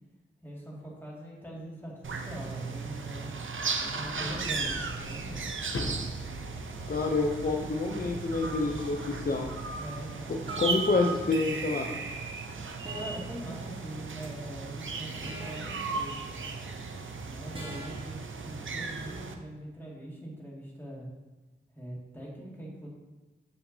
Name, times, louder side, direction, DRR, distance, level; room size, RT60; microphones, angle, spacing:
voice 1, 0.4-3.4 3.7-5.4 9.8-10.4 12.9-16.4 17.3-21.1 21.7-22.9, right 1 dB, 10° left, -5 dB, 2.1 m, -42 dB
sound 1, 2.0-19.3, right 4 dB, 70° right, 0.6 m, -36 dB
sound 2, 3.9-9.9, left 2 dB, 85° left, 0.7 m, -42 dB
voice 2, 6.9-9.5 10.3-11.9, left 3 dB, 45° left, 1 dB, 0.5 m, -28 dB
sound 3, 9.2-9.5 10.5-11.0 12.9-13.4 15.2-15.9 17.5-18.1, right 2 dB, 25° right, 1.3 m, -43 dB
7.0 x 5.4 x 2.7 m, 1.1 s
wide cardioid pair, 45°, 21 cm